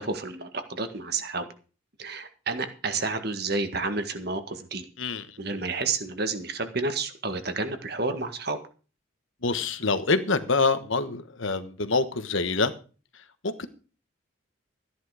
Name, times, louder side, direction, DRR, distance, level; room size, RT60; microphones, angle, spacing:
voice 1, 0.0-1.5 2.0-4.9 5.4-8.6, right 3 dB, 50° right, 8 dB, 1.8 m, -30 dB
voice 2, 9.4-12.7 13.4-13.7, left 3 dB, 70° left, 11 dB, 1.3 m, -26 dB
14.5 x 10.5 x 4.9 m, 0.36 s
head